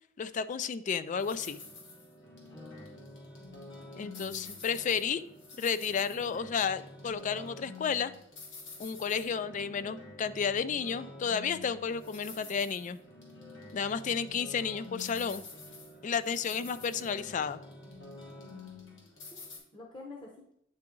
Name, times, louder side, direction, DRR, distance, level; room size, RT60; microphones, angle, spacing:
voice 1, 0.2-1.6 4.0-5.2 5.6-8.1 8.8-13.0 13.7-15.4 16.0-17.6, left 6 dB, 40° left, 13 dB, 0.3 m, -32 dB
sound 1, 1.2-19.6, left 3 dB, 70° left, 1.6 m, -48 dB
voice 2, 2.5-2.9 4.1-4.2 12.4-12.5 14.1-14.2 16.3-16.8 19.3-19.4 19.7-20.5, left 2 dB, 25° left, -2 dB, 0.9 m, -49 dB
8.8 x 3.8 x 3.7 m, 0.71 s
head